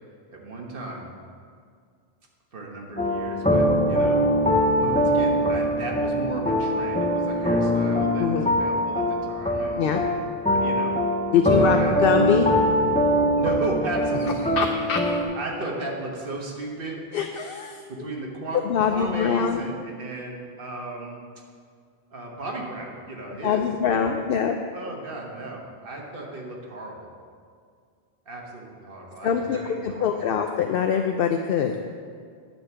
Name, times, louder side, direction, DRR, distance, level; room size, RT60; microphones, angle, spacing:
voice 1, 0.3-1.1 2.5-4.2 4.8-9.8 10.5-10.9 11.6-12.0 12.3-12.5 13.4-14.7 15.3-17.0 17.9-21.2 22.1-24.2 24.7-27.1 28.3-30.3, right 2 dB, 60° right, -1 dB, 1.5 m, -35 dB
sound 1, 3.0-15.2, equal, 10° left, 0.6 m, -23 dB
voice 2, 11.3-12.5 14.6-15.0 17.1-17.8 18.6-19.6 23.4-24.5 29.2-31.7, left 7 dB, 65° left, 5 dB, 0.7 m, -23 dB
10.0 x 4.4 x 7.3 m, 2.1 s
omnidirectional pair, 1.1 m